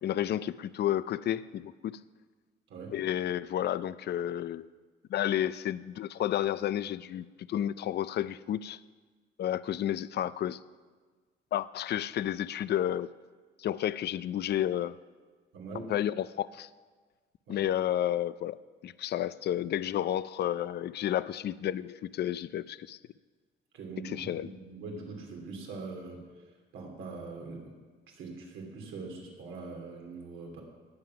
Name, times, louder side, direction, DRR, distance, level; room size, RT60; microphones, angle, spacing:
voice 1, 0.0-2.0 2.9-4.7 5.1-8.8 9.4-10.6 11.5-13.1 13.6-15.0 15.9-16.7 17.5-18.6 18.8-23.0 24.0-24.5, left 11 dB, 55° left, 16 dB, 0.4 m, -31 dB
voice 2, 2.7-3.0 15.5-15.9 17.5-17.6 23.7-26.3 26.7-27.7 28.1-30.6, right 3 dB, 85° right, 1 dB, 2.9 m, -42 dB
18.5 x 7.7 x 5.8 m, 1.4 s
cardioid pair, 90°, 20 cm